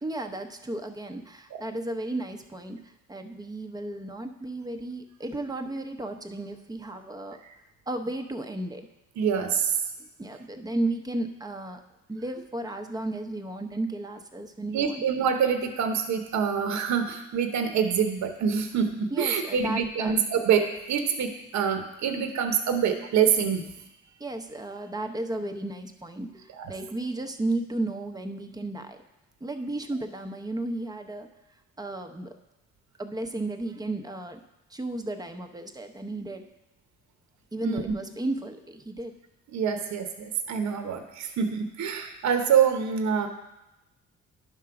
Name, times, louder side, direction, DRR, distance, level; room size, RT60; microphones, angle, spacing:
voice 1, 0.0-7.4 7.9-8.9 10.0-11.8 12.1-15.0 19.1-20.2 24.2-29.0 29.4-31.3 31.8-32.3 33.0-34.4 34.7-36.5 37.5-39.1, right 2 dB, 15° right, 6 dB, 0.7 m, -34 dB
voice 2, 9.2-9.8 14.7-23.7 26.6-26.7 36.1-36.3 37.6-37.8 39.5-43.3, right 7 dB, 65° right, 5 dB, 0.9 m, -26 dB
10.5 x 3.7 x 5.9 m, 0.95 s
cardioid pair, 90°, 30 cm